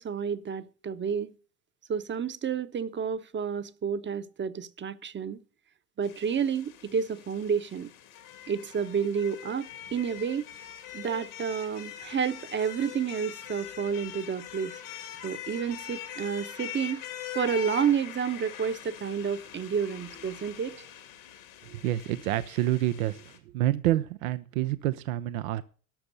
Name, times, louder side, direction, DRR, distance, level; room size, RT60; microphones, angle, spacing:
voice 1, 0.0-1.4 1.9-5.4 6.0-7.9 8.5-10.5 10.9-14.8 15.2-17.0 17.3-20.9, right 7 dB, 25° right, 0.8 m, -30 dB
sound 1, 6.0-23.4, left 11 dB, 75° left, 2.6 m, -43 dB
voice 2, 21.7-23.2 23.5-25.6, right 14 dB, 75° right, 0.7 m, -28 dB
12.0 x 6.8 x 6.6 m
hypercardioid pair, 70°, 41 cm